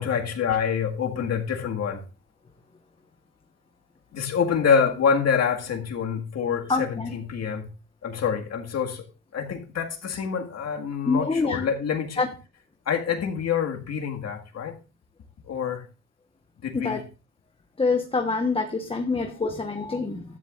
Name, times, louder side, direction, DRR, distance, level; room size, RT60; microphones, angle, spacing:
voice 1, 0.0-2.0 4.1-7.7 8.0-9.0 9.3-12.2 12.9-14.8 15.5-15.8 16.6-17.1, left 6 dB, 60° left, 1.9 m, -26 dB
voice 2, 6.7-7.1 11.1-11.6 12.2-12.3 16.7-17.0 17.8-20.2, left 3 dB, 20° left, 1.2 m, -26 dB
13.0 x 10.5 x 2.5 m
cardioid pair, 90°, 30 cm